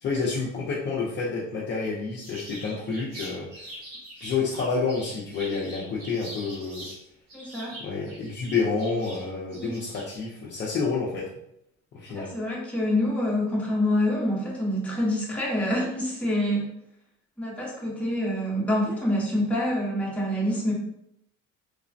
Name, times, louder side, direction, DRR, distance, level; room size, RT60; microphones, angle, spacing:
voice 1, 0.0-3.8 4.2-6.9 7.8-11.3 11.9-12.3, left 4 dB, 35° left, -5 dB, 0.4 m, -29 dB
sound 1, 2.2-7.0 7.3-10.2, right 1 dB, 50° right, 1.4 m, -43 dB
voice 2, 7.3-7.7 9.5-9.7 12.1-16.7 17.4-20.7, left 1 dB, 5° left, -6 dB, 0.7 m, -26 dB
3.2 x 2.0 x 2.5 m, 0.76 s
cardioid pair, 160°, 31 cm